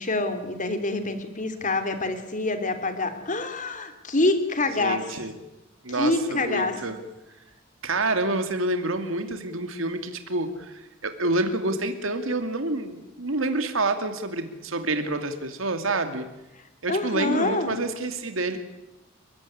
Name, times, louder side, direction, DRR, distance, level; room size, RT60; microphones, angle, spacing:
voice 1, 0.0-5.0 5.9-6.8 16.9-17.8, left 2 dB, 40° left, 9 dB, 3.1 m, -26 dB
voice 2, 4.8-5.3 5.8-7.0 7.8-16.3 16.8-18.6, right 2 dB, 75° right, 7 dB, 2.5 m, -28 dB
30.0 x 15.5 x 9.9 m, 0.96 s
head